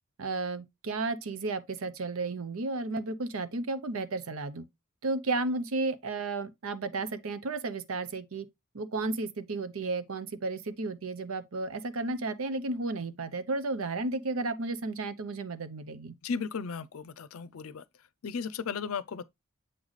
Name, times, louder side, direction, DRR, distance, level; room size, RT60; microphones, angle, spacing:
voice 1, 0.2-4.6 5.0-8.5 8.7-16.1, right 3 dB, 80° right, 0.7 m, -33 dB
voice 2, 16.2-17.8 18.2-19.2, left 5 dB, 80° left, 0.5 m, -35 dB
7.5 x 4.0 x 3.1 m
head